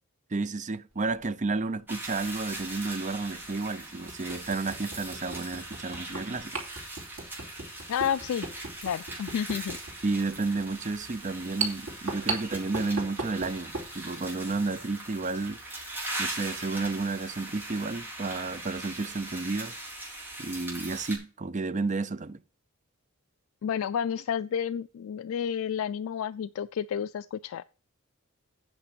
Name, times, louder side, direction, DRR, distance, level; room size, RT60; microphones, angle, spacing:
voice 1, 0.3-6.6 10.0-15.6 16.2-19.7 20.4-22.4, right 3 dB, 35° right, 0.6 m, -31 dB
sound 1, 1.1-1.3 2.8-2.9 3.4-3.5 4.1-13.9, right 4 dB, 70° right, 3.1 m, -37 dB
sound 2, 1.9-21.2, right 1 dB, 10° right, 4.1 m, -40 dB
voice 2, 7.9-8.5 8.8-9.8 23.6-27.6, left 8 dB, 75° left, 0.3 m, -30 dB
8.8 x 5.8 x 6.1 m
head